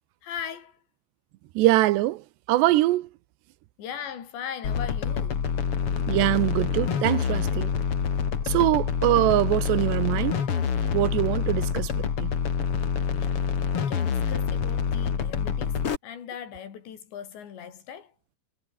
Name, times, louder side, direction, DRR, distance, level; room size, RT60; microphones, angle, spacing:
voice 1, 0.2-0.8 3.8-5.5 13.2-13.5 13.8-18.1, left 8 dB, 80° left, 5.7 m, -39 dB
voice 2, 1.6-2.2 2.5-3.1 6.1-7.7 8.5-10.4 10.9-12.3, right 17 dB, 80° right, 3.0 m, -23 dB
sound 1, 4.6-16.0, left 7 dB, 40° left, 2.4 m, -26 dB
omnidirectional pair, 5.0 m